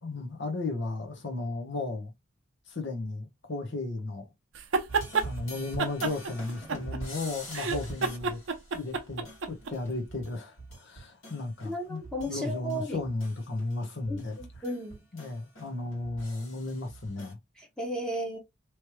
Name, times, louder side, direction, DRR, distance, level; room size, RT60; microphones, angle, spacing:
voice 1, 0.0-2.1 2.7-4.3 5.2-8.4 8.7-12.0 12.3-14.4 15.1-17.4, left 2 dB, 60° left, 1.1 m, -34 dB
sound 1, 4.6-5.3 5.8-7.2 7.5-9.7, right 4 dB, 65° right, 0.6 m, -29 dB
sound 2, 4.9-12.4 12.7-17.3, right 1 dB, 80° left, 2.2 m, -44 dB
voice 2, 11.6-13.0 14.1-15.0 17.6-18.4, equal, 5° left, 1.0 m, -34 dB
3.2 x 3.1 x 3.0 m
head